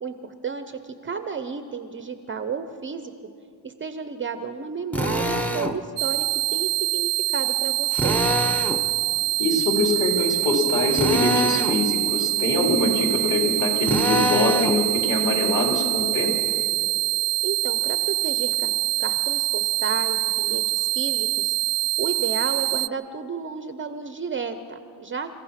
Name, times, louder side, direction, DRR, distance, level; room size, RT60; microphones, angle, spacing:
voice 1, 0.0-3.1 3.6-8.2 17.4-18.7 19.0-21.5 22.0-25.3, right 5 dB, 25° right, 9 dB, 0.8 m, -32 dB
Drill, 4.9-5.8 7.9-8.8 10.9-11.8 13.8-14.8, left 1 dB, 5° left, 1.0 m, -25 dB
sound 1, 6.0-22.9, right 18 dB, 45° right, 0.5 m, -25 dB
voice 2, 9.4-16.3, left 2 dB, 40° left, 1 dB, 4.2 m, -23 dB
29.5 x 15.5 x 5.8 m, 2.5 s
cardioid pair, 120°, 49 cm